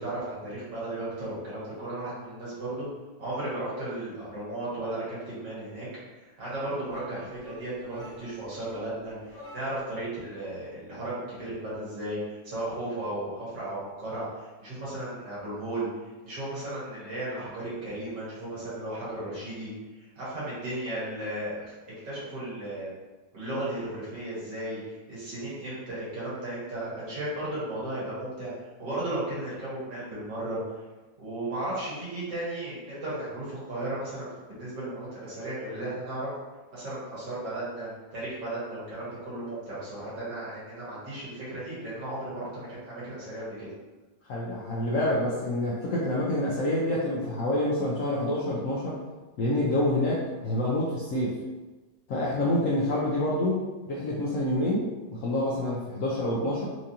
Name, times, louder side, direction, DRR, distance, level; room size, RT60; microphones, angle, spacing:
voice 1, 0.0-2.9 3.2-5.9 6.2-19.7 20.0-21.7 22.0-22.9 23.3-30.8 31.2-36.3 36.7-43.7, right 1 dB, 75° right, -9 dB, 2.2 m, -35 dB
sound 1, 6.9-10.0, right 1 dB, 50° left, 1.3 m, -49 dB
voice 2, 44.3-49.0 49.4-51.3 52.1-54.8 55.2-56.6, left 1 dB, 70° left, -5 dB, 0.8 m, -27 dB
4.5 x 2.6 x 2.8 m, 1.2 s
omnidirectional pair, 1.9 m